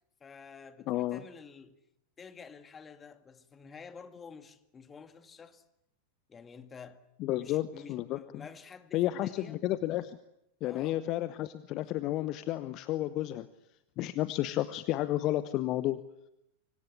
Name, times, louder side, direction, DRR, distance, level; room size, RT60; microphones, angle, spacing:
voice 1, 0.2-1.8 2.2-5.6 6.3-7.0 7.3-9.6 10.6-11.0, left 5 dB, 20° left, 2.0 m, -50 dB
voice 2, 0.9-1.2 7.2-8.4 8.9-10.2 10.6-13.5 14.0-16.0, left 15 dB, 40° left, 1.0 m, -32 dB
25.5 x 24.5 x 8.3 m
figure-of-eight pair, 90°, 0 cm